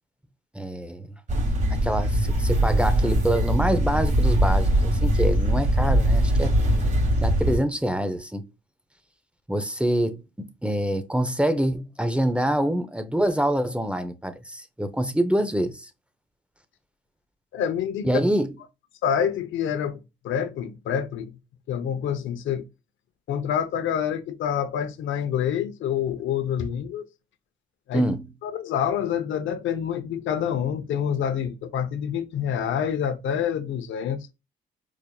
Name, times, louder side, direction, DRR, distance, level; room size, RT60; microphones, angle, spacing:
voice 1, 0.5-1.1 1.7-6.6 7.2-8.4 9.5-15.9 18.0-18.5 27.9-28.3, right 1 dB, 5° right, 0.6 m, -25 dB
sound 1, 1.3-7.6, right 1 dB, 40° right, 1.9 m, -21 dB
voice 2, 17.5-18.2 19.0-20.0 20.2-21.3 21.7-22.7 23.3-27.1 27.9-28.0 28.4-34.3, left 8 dB, 75° left, 0.7 m, -27 dB
4.8 x 2.7 x 2.3 m
cardioid pair, 90°, 20 cm